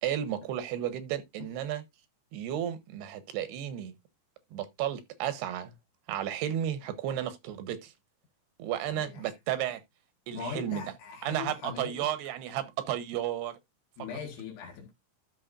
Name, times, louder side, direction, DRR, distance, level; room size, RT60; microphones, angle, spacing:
voice 1, 0.0-1.8 2.3-3.9 4.5-5.7 6.1-7.9 8.6-9.8 10.3-10.8 11.2-13.5, right 11 dB, 90° right, 3.1 m, -33 dB
voice 2, 8.9-9.3 10.3-12.1 14.0-14.9, left 6 dB, 80° left, 3.5 m, -40 dB
13.0 x 5.8 x 2.6 m
omnidirectional pair, 4.6 m